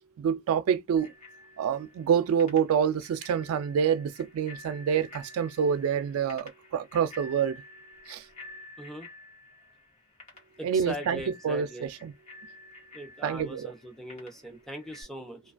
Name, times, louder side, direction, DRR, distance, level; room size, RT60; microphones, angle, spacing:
voice 1, 0.2-1.1 1.6-7.6 8.1-8.3 10.6-12.1 13.2-13.7, right 7 dB, 85° right, 0.3 m, -27 dB
Bicycle bell, 1.0-15.0, left 2 dB, 35° left, 1.0 m, -51 dB
voice 2, 8.8-9.1 10.6-11.9 12.9-15.4, equal, ahead, 0.5 m, -40 dB
2.3 x 2.2 x 2.4 m
head